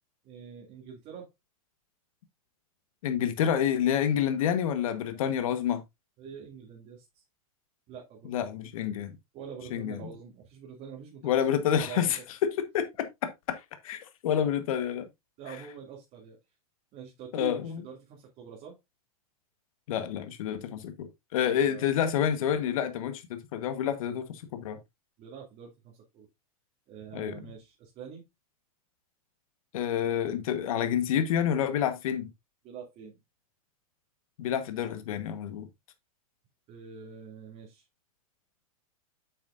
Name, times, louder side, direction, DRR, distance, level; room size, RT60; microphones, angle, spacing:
voice 1, 0.2-1.3 5.1-5.4 6.2-7.2 7.9-8.3 9.3-12.2 15.4-16.4 16.9-18.8 21.4-21.8 25.2-26.3 26.9-28.2 32.6-33.2 36.7-37.9, right 7 dB, 40° right, 2.3 m, -45 dB
voice 2, 3.0-5.8 8.3-9.1 9.7-9.9 11.2-12.2 12.5-15.0 17.3-17.7 19.9-24.8 27.1-27.4 29.7-32.3 34.4-35.7, left 9 dB, 65° left, 1.3 m, -28 dB
8.4 x 6.5 x 2.5 m
hypercardioid pair, 115°, 19 cm